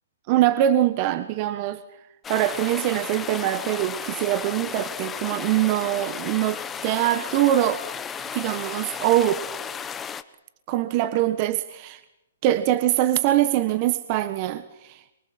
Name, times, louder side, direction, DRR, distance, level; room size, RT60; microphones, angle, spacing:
voice 1, 0.3-1.8 2.3-7.8 8.3-9.4 10.7-12.0 12.4-15.0, right 13 dB, 35° right, 13 dB, 1.4 m, -23 dB
sound 1, 2.2-10.2, left 7 dB, 15° left, 1.1 m, -34 dB
24.0 x 23.5 x 7.8 m, 0.89 s
hypercardioid pair, 135°, 0 cm